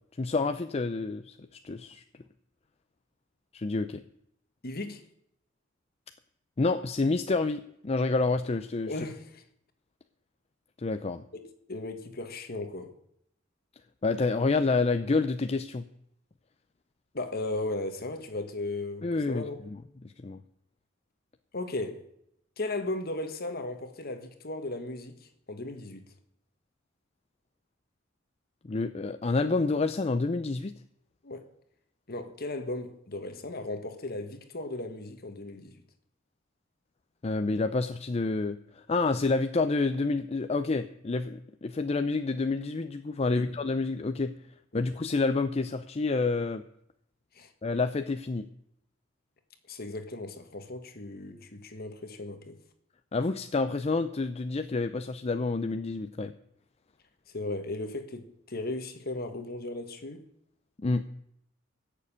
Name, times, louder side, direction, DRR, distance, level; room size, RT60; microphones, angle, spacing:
voice 1, 0.2-1.3 1.6-2.0 3.5-4.0 6.6-8.9 10.8-11.2 14.0-15.8 19.0-19.8 20.2-20.4 28.6-30.7 37.2-44.3 44.7-46.6 47.6-48.5 53.1-56.3 60.8-61.0, left 3 dB, 30° left, 0.5 m, -28 dB
voice 2, 4.6-5.0 8.9-9.4 11.3-12.9 17.1-19.6 21.5-22.0 22.6-26.1 31.2-31.5 32.1-35.8 43.3-43.4 44.7-44.8 47.3-47.5 49.7-52.6 57.3-60.3, left 2 dB, 50° left, 1.6 m, -36 dB
16.0 x 6.9 x 8.7 m
head